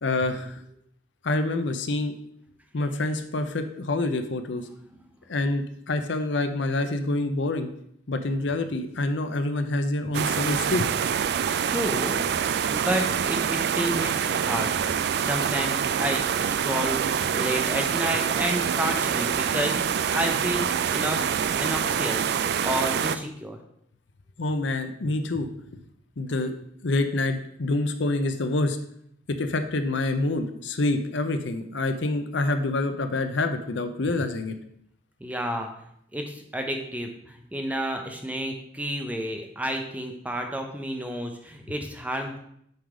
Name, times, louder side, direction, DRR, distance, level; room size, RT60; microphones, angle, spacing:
voice 1, 0.0-0.6 1.2-2.1 2.7-4.7 5.3-7.7 8.1-10.9 24.4-25.5 26.2-26.5 26.8-28.8 29.3-34.5, left 2 dB, 60° left, 8 dB, 0.7 m, -27 dB
sound 1, 10.1-23.2, right 8 dB, 55° right, 0.3 m, -26 dB
voice 2, 11.6-12.2 12.7-14.7 15.2-17.0 17.3-21.3 21.5-23.6 35.2-35.7 36.1-42.4, equal, 10° right, 4 dB, 0.8 m, -30 dB
7.9 x 4.0 x 5.0 m, 0.71 s
head